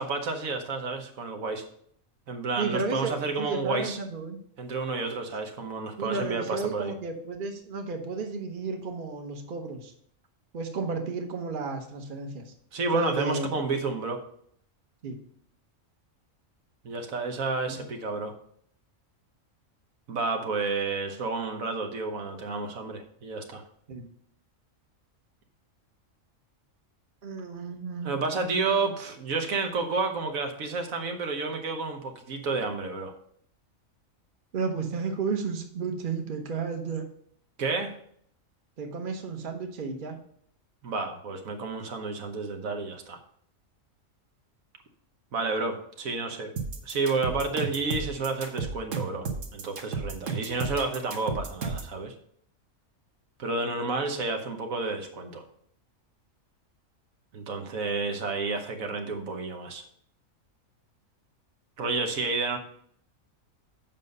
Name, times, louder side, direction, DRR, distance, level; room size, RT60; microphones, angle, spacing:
voice 1, 0.0-1.6 2.3-4.0 4.6-6.9 12.7-14.2 16.8-18.3 20.1-23.6 28.0-33.1 37.6-37.9 40.8-43.2 45.3-46.5 46.8-52.1 53.4-55.4 57.3-59.8 61.8-62.6, right 3 dB, 90° right, 4 dB, 1.5 m, -30 dB
voice 2, 2.6-4.4 6.0-9.9 10.5-12.5 12.9-13.5 15.0-15.2 17.7-17.9 23.9-24.1 27.2-28.7 34.5-37.0 38.8-40.2 50.4-50.5, right 4 dB, 45° right, 5 dB, 1.1 m, -33 dB
sound 1, 46.6-51.9, right 5 dB, 70° right, 1.5 m, -33 dB
7.5 x 5.4 x 5.3 m, 0.65 s
omnidirectional pair, 1.4 m